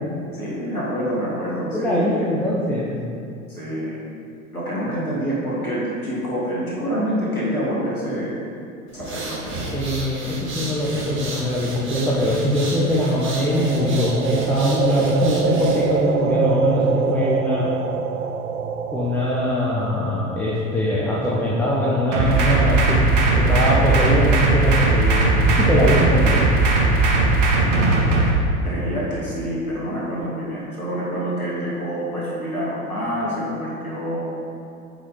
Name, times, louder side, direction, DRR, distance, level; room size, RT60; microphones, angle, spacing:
voice 1, 0.3-2.1 3.5-4.0 4.5-8.3 8.9-9.5 27.6-27.9 28.6-34.3, equal, 90° left, -7 dB, 1.8 m, -27 dB
voice 2, 1.7-2.9 9.7-17.7 18.9-23.0 23.4-26.4, left 1 dB, 5° left, -6 dB, 1.0 m, -22 dB
sound 1, 8.9-16.0, right 2 dB, 30° right, 1.4 m, -33 dB
sound 2, 12.9-20.9, right 6 dB, 75° right, 0.5 m, -25 dB
sound 3, 22.1-28.3, right 3 dB, 55° right, 1.4 m, -18 dB
8.1 x 5.6 x 3.9 m, 2.6 s
figure-of-eight pair, 80°, 42 cm